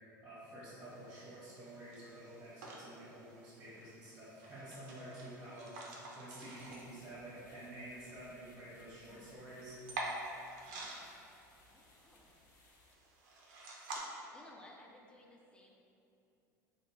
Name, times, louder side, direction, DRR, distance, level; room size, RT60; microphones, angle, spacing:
voice 1, 0.0-9.8, right 1 dB, 20° right, -10 dB, 0.9 m, -50 dB
sound 1, 0.8-14.0, right 2 dB, 65° right, 0.5 m, -49 dB
sound 2, 6.5-13.0, left 2 dB, 85° left, 0.4 m, -67 dB
voice 2, 9.1-9.5 10.6-11.2 11.7-12.4 14.3-15.7, left 1 dB, 10° left, 0 dB, 0.4 m, -60 dB
2.4 x 2.1 x 3.0 m, 2.7 s
hypercardioid pair, 80°, 10 cm